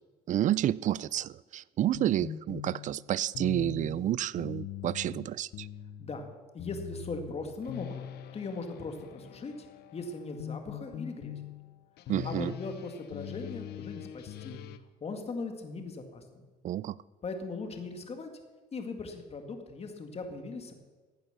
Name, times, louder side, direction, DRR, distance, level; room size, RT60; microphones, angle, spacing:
voice 1, 0.3-5.7 12.1-12.5 16.6-17.0, right 12 dB, 50° right, 21 dB, 0.4 m, -30 dB
sound 1, 1.9-14.8, left 10 dB, 75° left, 0.8 m, -42 dB
voice 2, 6.5-9.7 9.9-11.4 12.2-14.6 15.0-16.4 17.2-18.3 18.7-20.7, left 3 dB, 35° left, 5 dB, 2.1 m, -39 dB
15.0 x 9.0 x 6.8 m, 1.3 s
cardioid pair, 110°, 17 cm